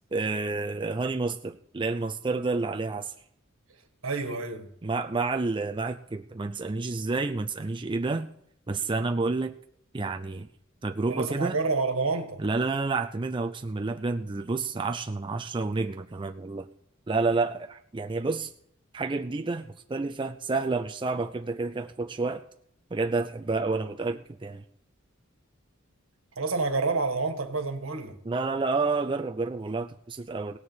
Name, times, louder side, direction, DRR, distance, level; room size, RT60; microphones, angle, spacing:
voice 1, 0.1-3.1 4.8-8.3 8.7-9.5 9.9-10.5 10.8-11.6 12.4-16.7 17.1-18.5 18.9-22.4 22.9-24.6 28.2-30.6, right 3 dB, 25° right, 0.5 m, -29 dB
voice 2, 4.0-4.7 11.1-12.4 26.4-28.2, right 3 dB, 80° right, 1.6 m, -28 dB
17.5 x 6.7 x 7.3 m
head